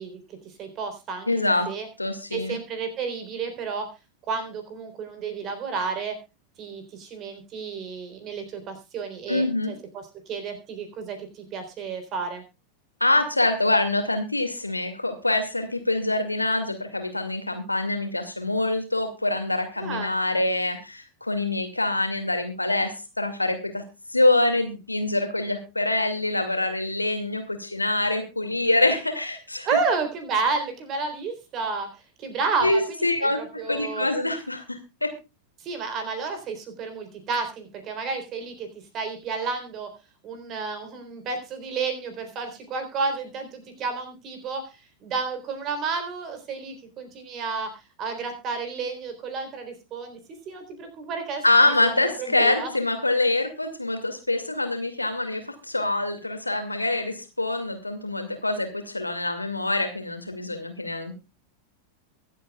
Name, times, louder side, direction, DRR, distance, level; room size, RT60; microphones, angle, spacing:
voice 1, 0.0-1.9 2.3-3.9 4.3-6.2 6.6-12.4 19.8-20.1 29.6-34.1 35.6-38.7 38.9-39.9 40.2-50.2 50.5-52.7, right 4 dB, 35° right, 8 dB, 3.8 m, -31 dB
voice 2, 1.3-1.7 2.0-2.6 9.3-9.7 13.0-23.8 24.1-29.7 32.6-35.1 51.4-61.1, left 2 dB, 85° left, 6 dB, 2.3 m, -25 dB
23.5 x 8.5 x 2.4 m, 0.28 s
figure-of-eight pair, 90°, 0 cm